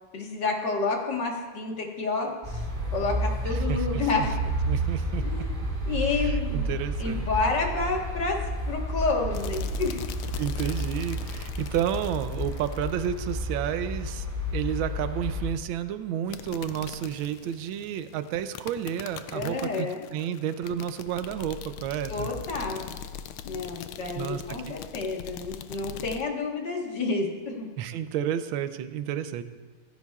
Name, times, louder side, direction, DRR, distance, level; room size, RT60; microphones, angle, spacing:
voice 1, 0.1-2.6 2.9-4.3 5.2-5.5 5.9-6.7 7.0-8.4 8.7-10.0 19.3-20.0 22.1-23.0 23.5-27.7, left 3 dB, 55° left, 0 dB, 2.0 m, -29 dB
sound 1, 2.4-15.5, right 1 dB, 25° right, 1.7 m, -31 dB
voice 2, 3.5-4.3 4.7-5.2 6.1-7.3 10.4-14.3 14.5-22.3 24.1-24.7 27.8-29.4, right 10 dB, 75° right, 10 dB, 1.4 m, -31 dB
sound 2, 9.3-13.5 16.3-26.2, left 9 dB, 80° left, 1.4 m, -41 dB
15.5 x 14.0 x 2.4 m, 1.4 s
omnidirectional pair, 2.3 m